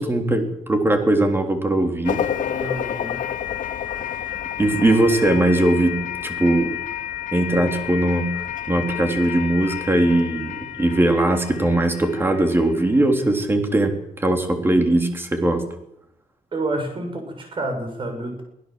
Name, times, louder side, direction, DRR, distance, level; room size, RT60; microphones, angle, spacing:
voice 1, 0.0-2.2 4.6-6.8 7.3-8.3 8.7-15.6, right 1 dB, 15° right, 5 dB, 3.3 m, -20 dB
sound 1, 2.0-13.2, left 10 dB, 60° left, 1.8 m, -30 dB
voice 2, 2.5-3.2 16.5-18.4, right 2 dB, 35° right, 5 dB, 6.6 m, -29 dB
24.0 x 16.0 x 7.6 m, 0.80 s
cardioid pair, 150°, 15 cm